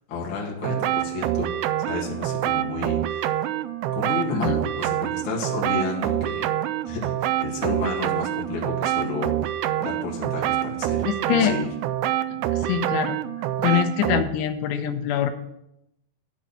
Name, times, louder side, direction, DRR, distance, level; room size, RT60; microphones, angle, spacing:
voice 1, 0.1-3.3 3.9-6.5 6.9-9.5 9.8-11.7, left 4 dB, 45° left, -2 dB, 1.9 m, -31 dB
sound 1, 0.6-14.2, right 12 dB, 85° right, 2.3 m, -26 dB
voice 2, 11.1-11.6 12.6-13.2 13.6-15.3, left 11 dB, 85° left, 8 dB, 2.8 m, -24 dB
10.0 x 4.2 x 7.5 m, 0.82 s
omnidirectional pair, 4.9 m